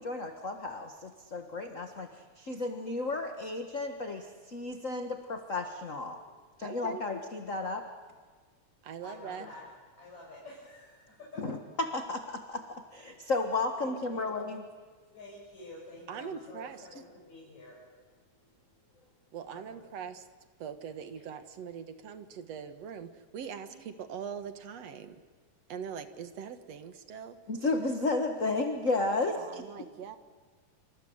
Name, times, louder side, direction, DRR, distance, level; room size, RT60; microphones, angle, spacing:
voice 1, 0.0-2.1 2.4-6.2 6.6-7.8 11.4-14.7 27.5-29.6, left 3 dB, 35° left, 5 dB, 1.4 m, -33 dB
voice 2, 6.6-7.0 8.8-9.5 16.1-16.8 19.3-20.2 20.6-25.2 25.7-27.4 29.2-30.2, right 7 dB, 60° right, 9 dB, 2.5 m, -42 dB
voice 3, 9.0-9.7 10.0-11.3 13.8-14.3 15.1-17.8 19.5-19.8 21.1-21.2 23.7-23.8 29.9-30.0, left 1 dB, 65° left, -5 dB, 7.6 m, -49 dB
28.0 x 26.5 x 8.0 m, 1.5 s
omnidirectional pair, 3.4 m